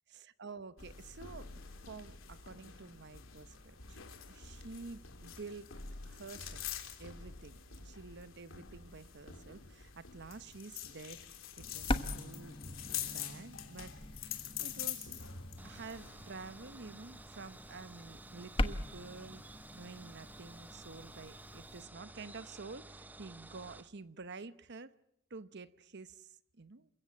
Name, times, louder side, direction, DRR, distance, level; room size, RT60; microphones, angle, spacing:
voice 1, 0.1-1.5 1.9-5.7 6.0-6.6 7.0-11.2 11.6-12.6 13.0-14.2 14.6-15.3 15.6-24.9 25.3-26.9, right 4 dB, 60° right, 14 dB, 1.0 m, -50 dB
sound 1, 0.8-16.3, left 8 dB, 75° left, 3.2 m, -46 dB
sound 2, 11.6-21.8, left 1 dB, 25° left, 1.2 m, -42 dB
sound 3, 15.6-23.9, right 2 dB, 10° right, 0.9 m, -53 dB
28.5 x 16.0 x 8.8 m, 0.78 s
head